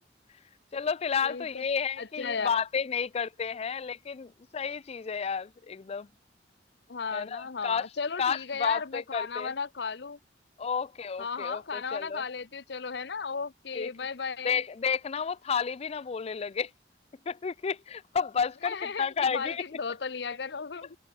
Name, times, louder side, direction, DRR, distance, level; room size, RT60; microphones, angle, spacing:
voice 1, 0.7-6.1 7.1-7.9 8.2-9.5 10.6-12.2 13.7-13.9 14.4-16.7 17.3-19.6, left 6 dB, 35° left, 0.4 m, -31 dB
voice 2, 1.2-1.6 2.0-2.6 6.9-10.2 11.2-14.6 18.6-21.0, left 5 dB, 65° left, 0.8 m, -35 dB
head